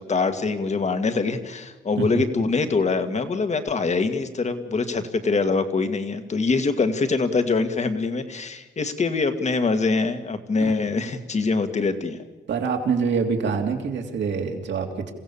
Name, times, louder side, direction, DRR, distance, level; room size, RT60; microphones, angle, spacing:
voice 1, 0.0-12.3, left 4 dB, 35° left, 9 dB, 1.9 m, -24 dB
voice 2, 12.5-15.1, right 5 dB, 65° right, 3 dB, 3.0 m, -25 dB
28.5 x 15.5 x 7.1 m, 1.3 s
cardioid pair, 90°, 20 cm